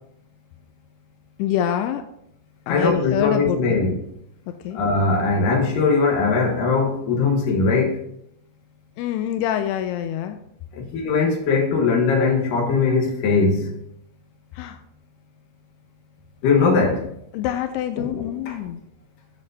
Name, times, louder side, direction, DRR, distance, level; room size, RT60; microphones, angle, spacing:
voice 1, 1.4-2.1 2.7-3.9 4.5-4.8 9.0-10.4 14.5-14.8 17.3-18.8, left 10 dB, 85° left, 2.3 m, -26 dB
voice 2, 2.7-4.0 4.7-8.0 10.7-13.8 16.4-17.1 18.0-18.6, left 4 dB, 60° left, 2.5 m, -20 dB
13.0 x 7.2 x 2.8 m
omnidirectional pair, 5.2 m